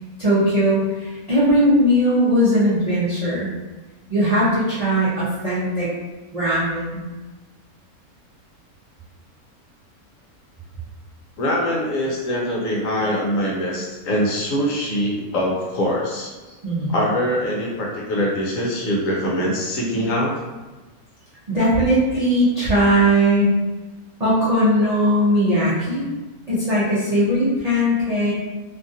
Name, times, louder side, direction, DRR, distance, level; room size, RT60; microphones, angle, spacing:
voice 1, 0.2-3.5 4.1-5.9 6.3-7.0 16.6-17.0 21.5-23.5 24.2-26.0 26.5-28.3, equal, 55° right, -10 dB, 0.4 m, -19 dB
voice 2, 11.4-16.3 16.9-20.3, equal, 65° left, -3 dB, 1.0 m, -23 dB
2.7 x 2.4 x 2.6 m, 1.2 s
omnidirectional pair, 1.6 m